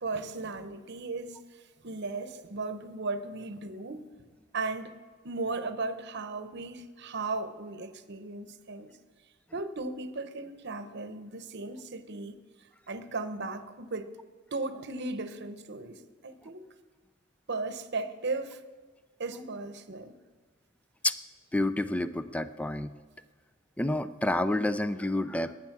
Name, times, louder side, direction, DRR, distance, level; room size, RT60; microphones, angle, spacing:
voice 1, 0.0-4.1 4.5-5.0 5.2-8.9 9.5-12.4 12.9-14.2 14.5-16.7 17.5-18.6 19.2-20.2, right 3 dB, 55° right, 10 dB, 0.9 m, -36 dB
voice 2, 21.5-22.9 23.8-25.5, left 1 dB, 5° left, 13 dB, 0.4 m, -29 dB
20.0 x 9.5 x 6.0 m, 1.5 s
head